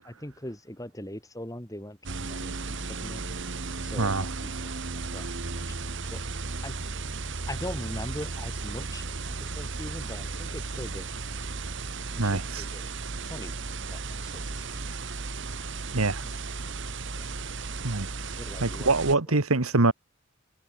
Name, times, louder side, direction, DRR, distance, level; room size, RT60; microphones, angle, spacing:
voice 1, 0.0-3.2 3.8-5.3 5.5-6.2 6.6-6.8 7.5-11.1 12.1-12.9 13.2-13.5 13.9-15.0 16.2-16.4 17.1-17.3 18.4-18.9 19.3-19.4, left 1 dB, 15° left, 4.4 m, -41 dB
sound 1, 2.0-19.1, right 3 dB, 55° right, 1.4 m, -35 dB
voice 2, 12.2-12.7 15.9-16.2 17.8-18.1 18.6-19.9, right 3 dB, 80° right, 1.6 m, -24 dB
head